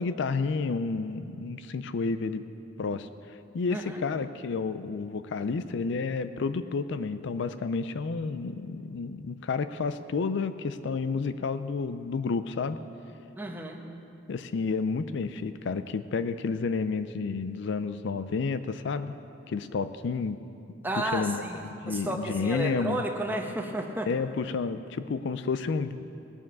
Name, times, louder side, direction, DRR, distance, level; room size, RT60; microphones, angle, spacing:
voice 1, 0.0-2.4 2.8-3.1 3.5-12.8 14.3-19.1 19.5-20.4 21.0-21.4 21.8-23.0 24.0-26.2, left 4 dB, 65° left, 12 dB, 0.4 m, -30 dB
voice 2, 13.4-13.8 20.8-24.1, right 1 dB, 10° right, 2 dB, 1.0 m, -32 dB
18.5 x 7.1 x 6.0 m, 2.7 s
head